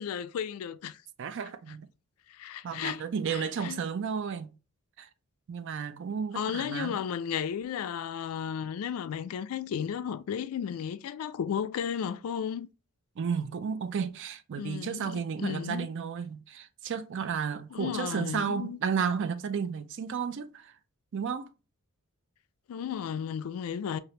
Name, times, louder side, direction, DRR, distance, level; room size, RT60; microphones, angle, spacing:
voice 1, 0.0-1.0 2.3-3.0 3.3-3.9 6.3-12.7 14.6-15.9 17.7-18.8 22.7-24.0, left 8 dB, 70° left, 0.3 m, -34 dB
voice 2, 1.2-1.9 2.6-4.5 5.0-5.1 5.5-6.9 13.2-20.7 21.1-21.5, right 6 dB, 55° right, 0.3 m, -33 dB
2.8 x 2.4 x 3.1 m
head